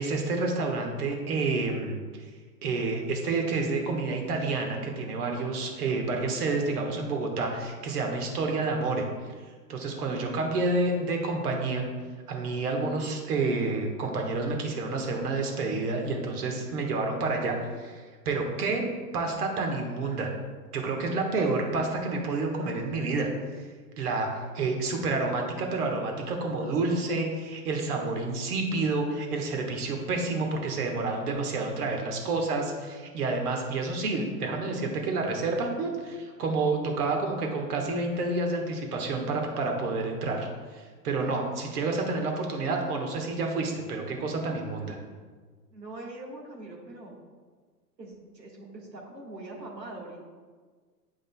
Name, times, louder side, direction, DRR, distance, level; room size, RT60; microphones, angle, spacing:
voice 1, 0.0-2.0 2.6-9.0 9.7-11.8 12.3-18.8 19.1-20.3 20.7-23.6 24.0-45.0, right 3 dB, 65° right, 2 dB, 1.4 m, -29 dB
voice 2, 45.7-47.1 48.0-50.2, right 2 dB, 90° right, -1 dB, 1.6 m, -42 dB
8.8 x 5.1 x 2.2 m, 1.5 s
hypercardioid pair, 110°, 49 cm